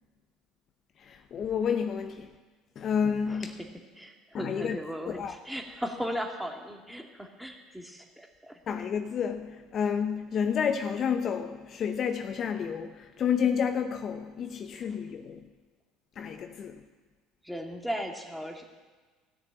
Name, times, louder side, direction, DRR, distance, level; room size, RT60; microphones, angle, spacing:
voice 1, 1.0-2.3 2.8-3.7 4.3-4.8 5.1-5.4 8.7-15.5 16.2-16.8, left 7 dB, 45° left, 0.7 m, -30 dB
voice 2, 4.0-8.6 17.4-18.6, equal, 5° right, 2.1 m, -37 dB
15.5 x 6.7 x 8.6 m
hypercardioid pair, 65°, 0 cm